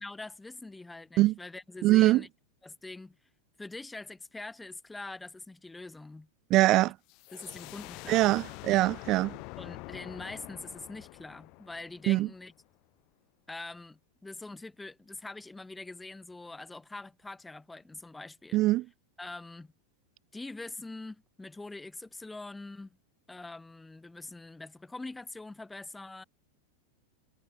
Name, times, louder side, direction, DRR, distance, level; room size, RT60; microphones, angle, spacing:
voice 1, 0.0-2.3 2.6-3.2 3.6-6.3 7.3-8.3 9.6-12.5 13.5-18.6 19.2-19.7 20.3-23.0 23.3-26.2, left 2 dB, 10° left, 3.7 m, -44 dB
voice 2, 1.8-2.2 6.5-6.9 8.1-9.4 12.1-12.3 18.5-18.9, right 17 dB, 35° right, 1.1 m, -23 dB
sound 1, 7.1-12.6, left 28 dB, 45° left, 1.8 m, -46 dB
figure-of-eight pair, 90°, 0 cm